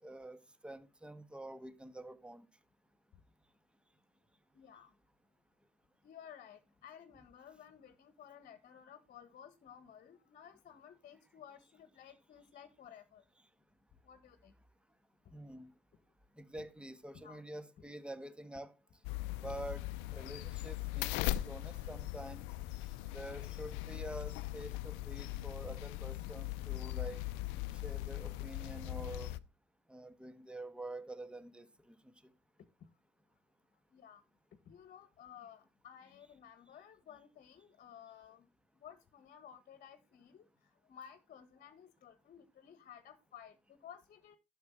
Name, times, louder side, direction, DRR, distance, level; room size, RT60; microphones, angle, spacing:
voice 1, 0.0-2.4 15.3-15.7 16.4-18.7 19.4-19.9 20.1-21.1 21.5-22.4 23.1-27.2 27.7-29.3 29.9-32.1, right 1 dB, 5° right, 1.3 m, -47 dB
voice 2, 4.5-4.9 6.0-13.2 14.0-14.5 16.6-16.7 17.1-17.4 32.8-32.9 33.9-34.2 34.7-38.5 38.7-44.4, left 9 dB, 40° left, 1.4 m, -55 dB
sound 1, 19.0-29.4, left 16 dB, 65° left, 0.7 m, -40 dB
11.5 x 6.6 x 4.5 m
hypercardioid pair, 70°, 21 cm